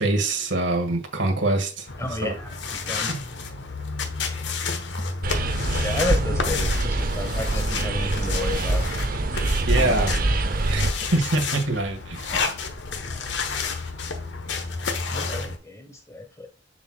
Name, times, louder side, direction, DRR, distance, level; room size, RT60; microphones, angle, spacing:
voice 1, 0.0-2.3 2.9-3.2 9.7-10.1 10.7-10.9 11.1-12.3, right 2 dB, 85° right, 1.7 m, -25 dB
sound 1, 1.9-15.6, left 4 dB, 80° left, 1.1 m, -30 dB
voice 2, 2.0-2.5 2.9-3.1 5.8-9.0 9.3-9.9 15.1-16.5, left 2 dB, 15° left, 1.0 m, -32 dB
sound 2, 5.2-10.9, right 2 dB, 50° right, 0.7 m, -24 dB
6.9 x 6.3 x 2.3 m
head